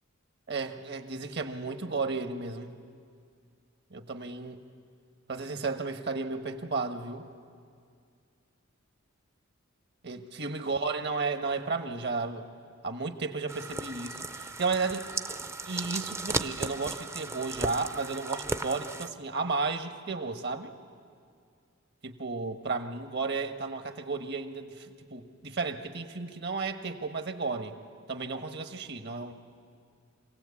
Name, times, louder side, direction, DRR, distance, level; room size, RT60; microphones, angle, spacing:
voice 1, 0.5-2.7 3.9-4.6 5.3-7.3 10.0-12.5 12.8-15.1 15.4-20.7 22.0-27.8 28.1-29.3, right 4 dB, 55° right, 8 dB, 1.4 m, -33 dB
sound 1, 13.5-19.1, right 2 dB, 15° right, 0.5 m, -36 dB
25.5 x 17.5 x 8.5 m, 2.2 s
head